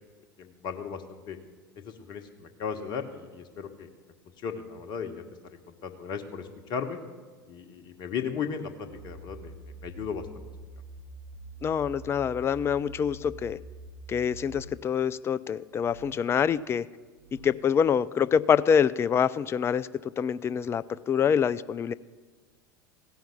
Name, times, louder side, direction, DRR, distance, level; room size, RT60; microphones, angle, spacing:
voice 1, 0.4-1.4 1.8-3.9 4.4-5.2 5.8-7.0 7.5-9.5 9.8-10.2, left 6 dB, 40° left, 6 dB, 1.1 m, -36 dB
sound 1, 8.8-14.6, right 2 dB, 45° right, 1.7 m, -45 dB
sound 2, 11.3-12.3 13.0-13.3 14.3-14.8 15.6-16.4 17.0-17.7, right 3 dB, 25° right, 3.1 m, -54 dB
voice 2, 11.6-13.6 14.1-16.9 17.4-21.9, left 7 dB, 20° left, 17 dB, 0.3 m, -26 dB
16.0 x 5.7 x 7.3 m, 1.4 s
figure-of-eight pair, 75°, 11 cm